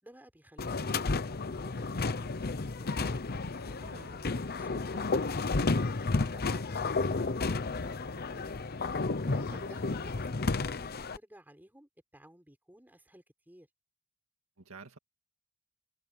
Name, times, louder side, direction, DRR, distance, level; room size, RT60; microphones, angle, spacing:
voice 1, 0.0-3.0 3.4-8.7 9.2-13.7, right 1 dB, 10° right, 6.4 m, -56 dB
sound 1, 0.6-11.2, left 3 dB, 45° left, 0.9 m, -32 dB
voice 2, 3.8-4.2 9.5-9.7 14.6-15.0, right 3 dB, 75° right, 2.0 m, -49 dB
head